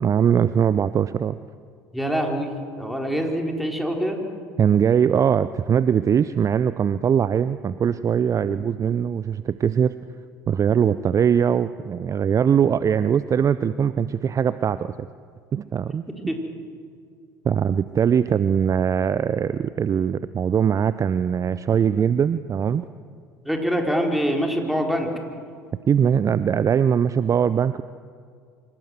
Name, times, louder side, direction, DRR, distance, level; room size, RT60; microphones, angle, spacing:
voice 1, 0.0-1.4 4.6-10.0 10.5-15.1 15.5-16.0 17.4-22.8 25.9-27.8, right 8 dB, 35° right, 15 dB, 0.6 m, -21 dB
voice 2, 1.9-4.2 8.4-8.6 16.3-16.4 23.4-25.1, equal, ahead, 2 dB, 4.4 m, -25 dB
26.0 x 17.5 x 7.9 m, 2.3 s
hypercardioid pair, 65°, 10 cm